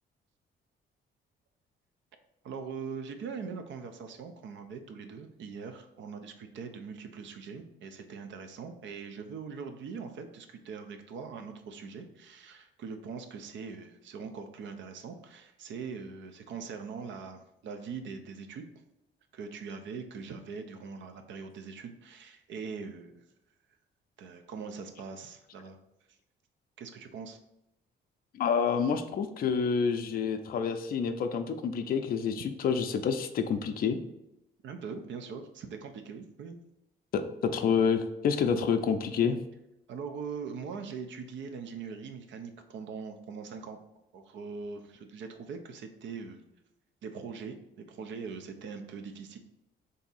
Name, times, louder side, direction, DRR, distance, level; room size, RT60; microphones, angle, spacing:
voice 1, 2.4-18.6 19.3-23.3 24.2-25.8 26.8-27.4 34.6-36.6 39.9-43.8 44.1-46.4 47.0-49.4, right 5 dB, 70° right, 6 dB, 0.5 m, -42 dB
voice 2, 28.3-34.0 37.1-39.4, left 6 dB, 50° left, 7 dB, 0.4 m, -28 dB
3.5 x 2.7 x 4.0 m, 0.88 s
cardioid pair, 90°, 20 cm